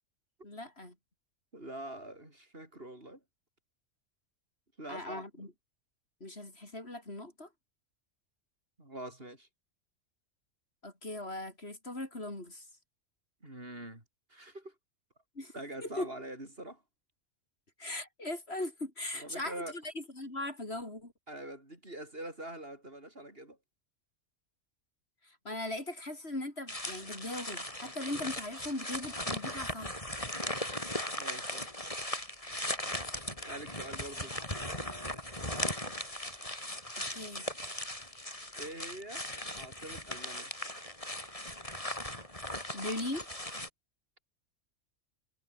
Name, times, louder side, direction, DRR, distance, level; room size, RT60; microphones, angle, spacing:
voice 1, 0.4-1.0 4.9-5.5 6.2-7.5 10.8-12.7 15.4-15.5 15.8-16.1 17.8-21.1 25.2-30.0 37.1-37.5 42.7-43.3, left 1 dB, 55° left, 5.7 m, -39 dB
voice 2, 1.5-3.2 4.8-5.5 8.8-9.5 13.4-14.0 14.3-14.7 15.5-16.8 19.1-19.8 21.3-23.6 31.1-31.9 33.5-35.9 38.6-39.2 39.5-40.5, right 1 dB, 50° right, 6.6 m, -45 dB
sound 1, 26.7-43.7, left 1 dB, 25° left, 6.1 m, -38 dB
omnidirectional pair, 1.3 m